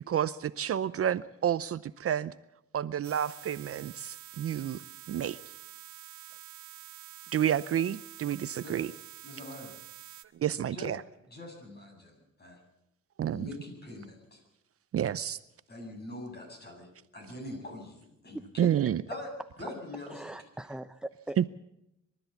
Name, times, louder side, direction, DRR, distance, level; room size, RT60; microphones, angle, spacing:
voice 1, 0.1-2.3 2.7-4.8 5.1-5.4 7.3-8.9 10.4-11.0 13.2-13.5 14.9-15.4 18.6-19.0 21.4-21.5, right 10 dB, 50° right, 15 dB, 0.6 m, -29 dB
sound 1, 3.0-10.2, right 13 dB, 75° right, 1.3 m, -48 dB
voice 2, 9.2-9.8 10.7-10.9 11.3-12.6 13.2-14.4 15.7-18.8 19.1-19.3 19.6-20.2, left 2 dB, 35° left, 3 dB, 7.9 m, -43 dB
voice 3, 20.1-21.5, right 1 dB, 5° right, 10 dB, 0.7 m, -41 dB
23.5 x 13.5 x 8.3 m, 0.84 s
cardioid pair, 90°, 30 cm